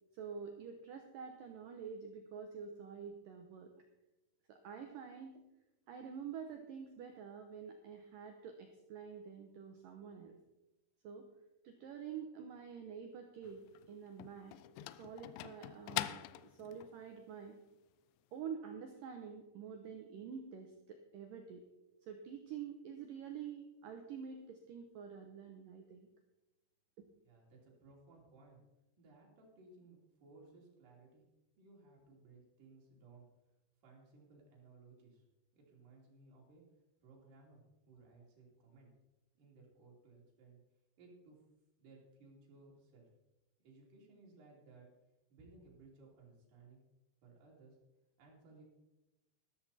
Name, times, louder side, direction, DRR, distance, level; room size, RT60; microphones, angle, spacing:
voice 1, 0.1-3.7 4.5-5.4 5.9-10.4 11.0-11.3 11.6-13.6 13.9-17.6 18.3-21.6 22.1-26.1, right 7 dB, 80° right, 4 dB, 1.9 m, -48 dB
sound 1, 13.4-17.0, left 16 dB, 85° left, 2.9 m, -44 dB
voice 2, 27.2-28.6 29.0-31.2 31.6-33.3 33.8-35.2 35.5-36.7 37.0-38.9 39.4-40.6 41.0-41.5 41.8-43.1 43.6-44.9 45.3-46.8 47.2-47.8 48.2-48.6, right 3 dB, 50° right, -3 dB, 4.4 m, -61 dB
13.0 x 13.0 x 4.2 m, 0.98 s
omnidirectional pair, 5.3 m